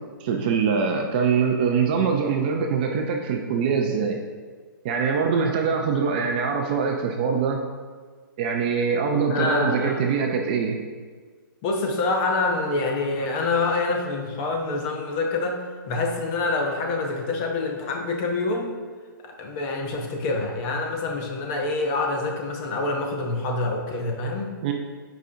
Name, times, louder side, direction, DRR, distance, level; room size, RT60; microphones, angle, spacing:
voice 1, 0.2-4.2 4.8-7.6 8.4-10.8 24.6-24.7, right 5 dB, 25° right, 2 dB, 0.4 m, -23 dB
voice 2, 9.3-10.0 11.6-18.7 19.2-24.5, left 3 dB, 25° left, 2 dB, 0.6 m, -26 dB
8.1 x 5.0 x 2.6 m, 1.5 s
hypercardioid pair, 160°, 12 cm